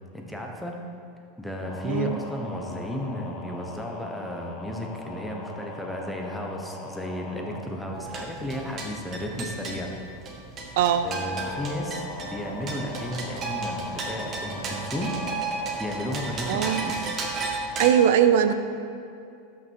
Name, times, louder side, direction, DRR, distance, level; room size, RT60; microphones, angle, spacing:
voice 1, 0.1-0.8 1.4-9.9 11.0-15.2 15.8-17.2, left 1 dB, ahead, 0 dB, 1.1 m, -34 dB
sound 1, 1.6-7.7 11.3-16.8, left 2 dB, 30° left, 1.4 m, -40 dB
voice 2, 1.8-2.2 10.8-11.1 16.5-16.8 17.8-18.5, right 9 dB, 70° right, 10 dB, 0.6 m, -20 dB
sound 2, 7.9-17.9, right 3 dB, 30° right, 1.5 m, -34 dB
12.0 x 6.1 x 4.7 m, 2.5 s
supercardioid pair, 135°, 0 cm